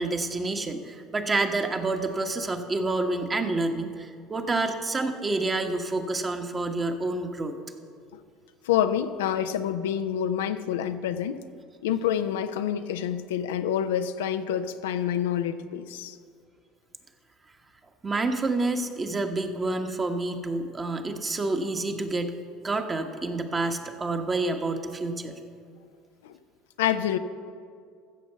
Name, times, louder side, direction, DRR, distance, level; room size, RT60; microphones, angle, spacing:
voice 1, 0.0-7.6 18.0-22.4 22.6-25.3, right 2 dB, 25° right, 5 dB, 1.3 m, -28 dB
voice 2, 8.6-11.4 11.8-16.2 26.2-26.3 26.8-27.2, left 10 dB, 75° left, 10 dB, 0.5 m, -27 dB
15.0 x 7.0 x 6.8 m, 2.2 s
hypercardioid pair, 70°, 0 cm